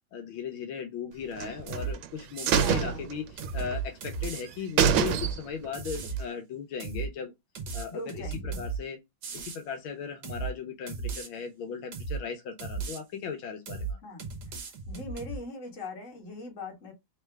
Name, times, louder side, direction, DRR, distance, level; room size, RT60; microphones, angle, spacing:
voice 1, 0.1-7.3 7.7-9.0 9.3-14.0, left 6 dB, 80° left, 1.5 m, -37 dB
sound 1, 1.4-2.1 2.5-3.7 4.1-4.2 4.5-4.6 4.8-5.7 6.0-6.1, right 8 dB, 85° right, 1.5 m, -26 dB
sound 2, 1.7-1.9 2.4-2.8 3.4-4.4 5.1-5.3 5.7-6.2 6.8-7.1 7.6-8.8 9.2-9.6 10.2-10.5 10.9-11.3 11.9-12.2 12.6-13.0 13.7-13.9 14.2-15.4, right 5 dB, 60° right, 1.5 m, -35 dB
voice 2, 2.6-3.0 7.9-8.6 14.0-14.6 14.9-16.9, left 2 dB, 40° left, 1.6 m, -41 dB
3.8 x 3.2 x 3.3 m
omnidirectional pair, 2.2 m